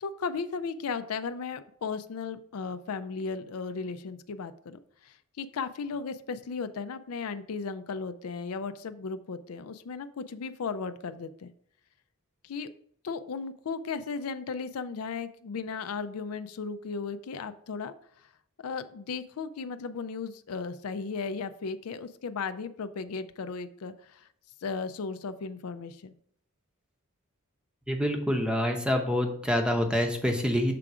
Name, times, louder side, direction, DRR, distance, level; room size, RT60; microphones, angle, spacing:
voice 1, 0.0-11.5 12.4-12.7 13.0-18.3 18.6-24.3 24.6-26.1, left 5 dB, 80° left, 11 dB, 0.4 m, -36 dB
voice 2, 27.9-30.7, equal, 5° right, 4 dB, 0.7 m, -26 dB
6.7 x 3.7 x 4.8 m, 0.65 s
head